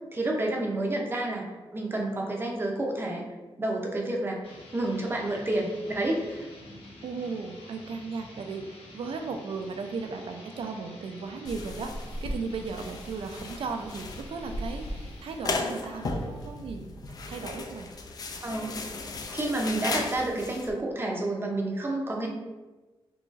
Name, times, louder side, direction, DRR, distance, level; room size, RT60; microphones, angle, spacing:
voice 1, 0.1-1.5 1.7-3.2 3.6-4.4 4.7-6.4 18.4-18.8 19.3-22.3, right 1 dB, 25° right, 0 dB, 0.6 m, -29 dB
voice 2, 0.8-1.4 7.0-16.9 17.2-17.9, right 4 dB, 75° right, 5 dB, 0.4 m, -36 dB
sound 1, 4.4-16.9, left 2 dB, 85° left, 0.8 m, -49 dB
sound 2, 11.4-20.7, left 2 dB, 45° left, 0.3 m, -36 dB
3.8 x 2.9 x 2.5 m, 1.2 s
wide cardioid pair, 145°, 9 cm